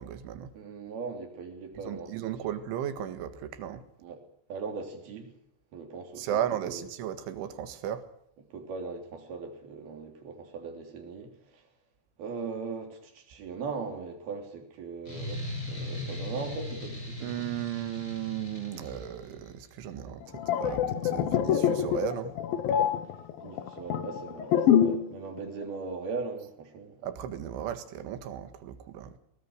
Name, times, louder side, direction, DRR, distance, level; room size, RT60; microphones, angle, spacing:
voice 1, 0.0-0.5 1.8-3.8 6.2-8.1 17.2-22.3 27.0-29.2, right 10 dB, 70° right, 4.1 m, -35 dB
voice 2, 0.5-2.2 4.0-4.2 4.5-5.3 5.7-6.3 6.7-6.8 8.5-11.7 12.2-17.4 23.0-23.1 23.4-27.1, right 4 dB, 50° right, 5.0 m, -39 dB
sound 1, 15.1-19.5, left 1 dB, 20° left, 7.2 m, -38 dB
sound 2, 20.2-25.1 25.4-25.6, left 9 dB, 65° left, 2.4 m, -26 dB
23.0 x 20.5 x 6.5 m
omnidirectional pair, 5.8 m